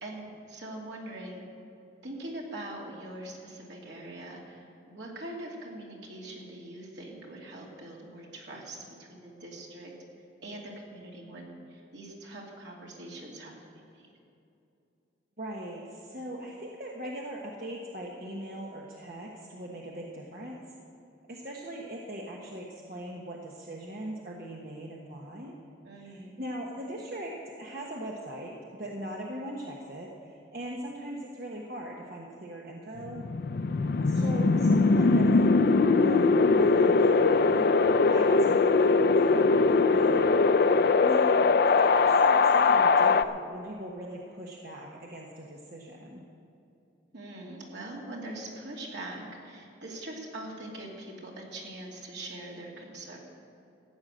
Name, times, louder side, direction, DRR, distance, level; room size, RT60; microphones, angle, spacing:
voice 1, 0.0-1.4 2.0-9.9 10.4-13.5 13.9-14.1 25.8-26.3 34.1-34.4 47.1-53.2, right 1 dB, 75° right, -2 dB, 2.8 m, -42 dB
voice 2, 15.4-20.6 21.3-25.5 25.9-33.2 34.0-37.7 38.0-40.3 40.6-46.2, right 1 dB, 55° right, -2 dB, 1.2 m, -40 dB
Wind, 33.0-43.2, left 4 dB, 55° left, 0.4 m, -21 dB
15.0 x 9.3 x 6.5 m, 2.6 s
head